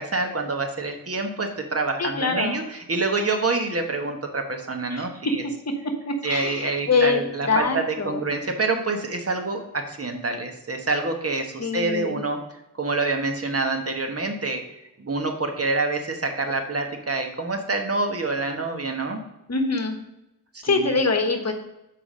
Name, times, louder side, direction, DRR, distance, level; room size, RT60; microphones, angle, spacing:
voice 1, 0.0-5.4 6.2-12.4 12.8-14.6 15.0-19.2 20.5-21.0, right 3 dB, 45° right, 4 dB, 1.2 m, -27 dB
voice 2, 2.0-2.6 4.9-5.1 6.1-8.2 11.6-12.2 19.5-20.0 20.6-21.5, left 4 dB, 50° left, 5 dB, 1.2 m, -24 dB
7.1 x 4.9 x 4.9 m, 0.91 s
wide cardioid pair, 105°, 34 cm